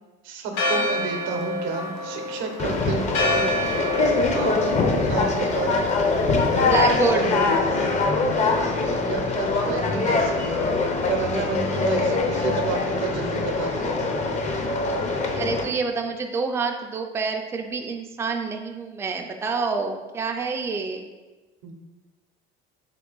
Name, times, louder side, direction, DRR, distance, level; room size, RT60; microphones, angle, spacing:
voice 1, 0.2-3.5 4.3-4.7 4.9-5.8 6.5-6.7 7.1-7.9 9.0-14.0 21.6-21.8, right 5 dB, 70° right, 4 dB, 0.6 m, -31 dB
Church bell, 0.5-6.8, left 1 dB, 80° left, 0.8 m, -29 dB
Conversation, 2.6-15.6, left 3 dB, 35° left, 0.6 m, -23 dB
voice 2, 6.7-7.3 15.3-21.1, right 4 dB, 10° right, 3 dB, 0.3 m, -27 dB
3.6 x 2.9 x 3.8 m, 1.2 s
cardioid pair, 110°, 21 cm